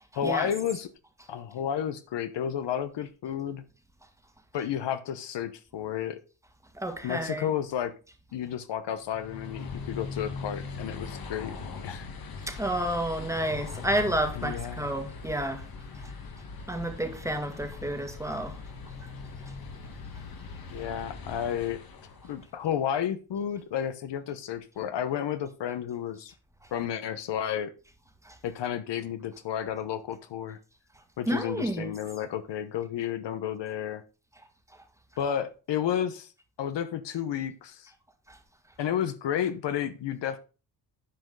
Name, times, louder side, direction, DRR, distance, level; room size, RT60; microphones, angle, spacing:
voice 1, 0.1-0.9 1.3-3.6 4.5-6.2 7.0-7.9 8.3-11.5 11.8-12.1 14.4-14.9 20.7-21.8 22.2-26.3 26.7-27.7 28.4-30.6 31.2-34.0 35.2-36.3 36.6-37.9 38.8-40.4, left 9 dB, 65° left, 1.0 m, -31 dB
voice 2, 6.7-7.5 12.5-15.7 15.9-16.1 16.7-18.6 19.0-19.1 19.4-19.5 28.2-28.4 31.3-31.9 38.3-38.4, right 1 dB, 5° right, 1.6 m, -31 dB
sound 1, 9.0-22.5, left 4 dB, 50° left, 1.7 m, -40 dB
10.0 x 5.2 x 3.9 m
cardioid pair, 105°, 45 cm